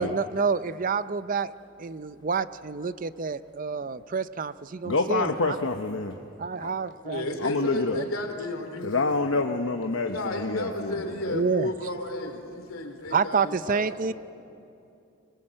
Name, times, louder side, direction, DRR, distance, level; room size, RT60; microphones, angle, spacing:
voice 1, 0.0-1.5 1.8-5.6 6.4-8.0 11.3-11.7 13.1-14.1, right 5 dB, 40° right, 14 dB, 0.5 m, -28 dB
voice 2, 4.8-6.2 6.6-6.7 7.4-8.0 8.8-11.5, left 3 dB, 75° left, 4 dB, 1.0 m, -27 dB
voice 3, 7.0-9.2 10.1-14.1, left 1 dB, 90° left, 5 dB, 2.9 m, -33 dB
26.0 x 21.0 x 7.7 m, 2.6 s
head